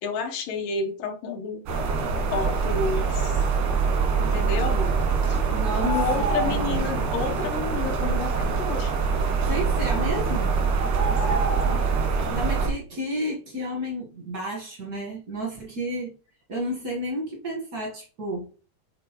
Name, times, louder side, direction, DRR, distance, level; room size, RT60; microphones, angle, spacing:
voice 1, 0.0-1.7 2.3-3.4 4.2-5.4 5.8-8.9 11.1-11.8, left 4 dB, 85° left, 2.6 m, -30 dB
sound 1, 1.7-12.7, right 5 dB, 90° right, 3.0 m, -24 dB
voice 2, 5.5-6.0 6.4-6.9 9.5-10.5 12.3-16.1 16.5-18.5, equal, 70° right, 0.8 m, -31 dB
9.3 x 3.8 x 2.9 m
omnidirectional pair, 3.7 m